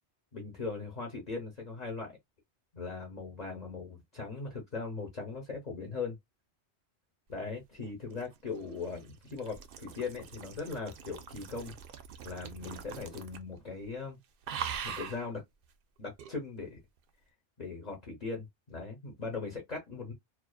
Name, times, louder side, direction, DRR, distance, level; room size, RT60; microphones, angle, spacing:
voice 1, 0.3-2.2 2.7-6.2 7.3-11.7 12.2-14.2 14.8-15.4 16.0-16.8 17.6-20.1, left 4 dB, 40° left, 0.9 m, -39 dB
sound 1, 7.8-13.6 13.8-14.1 14.4-15.3 16.2-16.3, right 8 dB, 60° right, 0.7 m, -42 dB
2.4 x 2.4 x 2.2 m
omnidirectional pair, 1.2 m